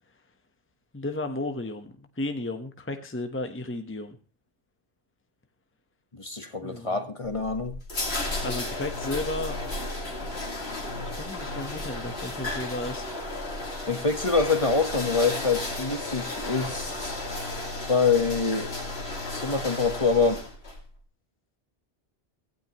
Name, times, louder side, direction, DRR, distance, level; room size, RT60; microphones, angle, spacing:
voice 1, 0.9-4.2 6.6-7.0 8.4-9.6 10.8-13.0, left 2 dB, 10° left, 6 dB, 1.1 m, -34 dB
voice 2, 6.2-7.7 13.9-17.1 17.9-18.7 19.3-20.4, left 4 dB, 30° left, 7 dB, 1.5 m, -25 dB
sound 1, 7.2-20.8, left 2 dB, 65° left, 2.9 m, -33 dB
17.0 x 15.5 x 3.1 m, 0.33 s
omnidirectional pair, 1.2 m